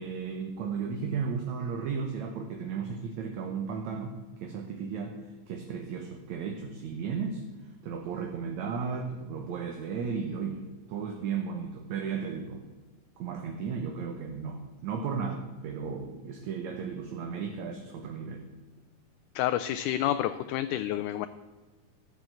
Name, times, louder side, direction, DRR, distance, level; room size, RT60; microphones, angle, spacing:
voice 1, 0.0-5.2 5.5-7.4 7.8-12.6 13.2-18.4, right 6 dB, 65° right, 3 dB, 2.2 m, -35 dB
voice 2, 19.4-21.3, left 12 dB, 80° left, 11 dB, 1.9 m, -29 dB
13.5 x 7.0 x 7.7 m, 1.3 s
omnidirectional pair, 3.9 m